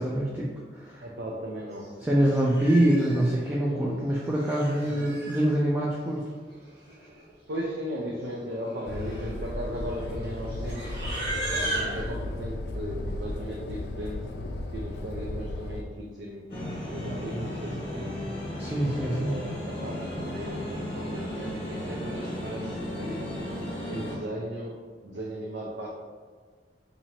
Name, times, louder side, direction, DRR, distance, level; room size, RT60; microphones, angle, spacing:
voice 1, 0.0-1.1 2.0-6.3 18.6-19.4, right 1 dB, 10° right, -5 dB, 0.3 m, -25 dB
voice 2, 1.0-1.9 2.2-2.4 4.7-5.0 7.5-11.0 11.5-14.2 14.7-16.4 16.9-18.1 19.0-23.2 23.9-25.9, equal, 80° right, -3 dB, 0.5 m, -37 dB
Livestock farm animals working animals, 1.8-2.0 2.3-3.3 4.2-5.5 6.5-6.6 6.8-7.2 7.5-7.8 8.4-12.0, right 1 dB, 65° right, 1.3 m, -36 dB
sound 1, 8.8-15.8, left 1 dB, 65° left, 0.4 m, -35 dB
sound 2, 16.5-24.1, left 1 dB, 30° left, 1.0 m, -34 dB
2.8 x 2.6 x 4.4 m, 1.5 s
head